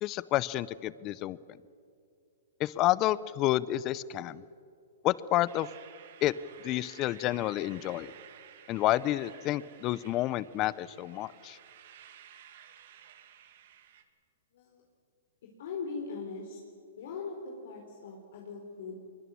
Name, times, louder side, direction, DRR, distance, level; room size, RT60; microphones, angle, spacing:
voice 1, 0.0-1.4 2.6-4.4 5.0-5.7 6.2-6.3 6.6-8.1 8.7-11.6, left 15 dB, 30° left, 19 dB, 0.7 m, -29 dB
sound 1, 5.4-14.0, right 10 dB, 60° right, 2.2 m, -54 dB
voice 2, 15.6-16.6 17.0-19.0, left 4 dB, 65° left, 0 dB, 4.1 m, -40 dB
23.0 x 22.5 x 7.2 m, 2.4 s
hypercardioid pair, 135°, 0 cm